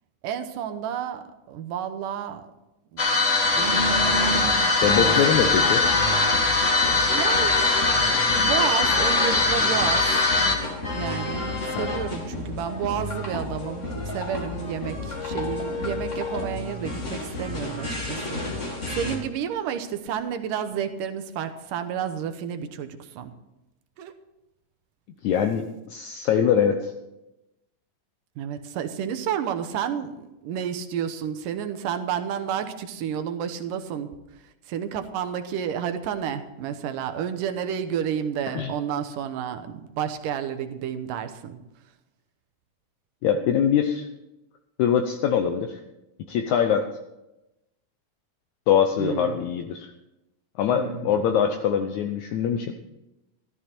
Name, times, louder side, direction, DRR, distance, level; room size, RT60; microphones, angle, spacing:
voice 1, 0.2-2.5 2.9-5.7 7.1-7.8 8.4-10.1 10.9-23.3 24.0-24.1 28.4-34.1 34.7-41.6 49.0-49.4 50.7-51.1, right 8 dB, 80° right, 8 dB, 2.5 m, -31 dB
sound 1, 3.0-10.6, left 3 dB, 45° left, 1.0 m, -21 dB
sound 2, 3.4-19.2, left 1 dB, 30° left, 1.8 m, -31 dB
voice 2, 4.8-5.8 11.7-11.9 25.2-26.9 38.5-38.7 43.2-44.1 44.8-45.8 46.3-46.9 48.7-49.9 50.6-52.7, left 8 dB, 75° left, 6 dB, 1.9 m, -23 dB
13.5 x 13.0 x 4.4 m, 0.95 s
omnidirectional pair, 3.8 m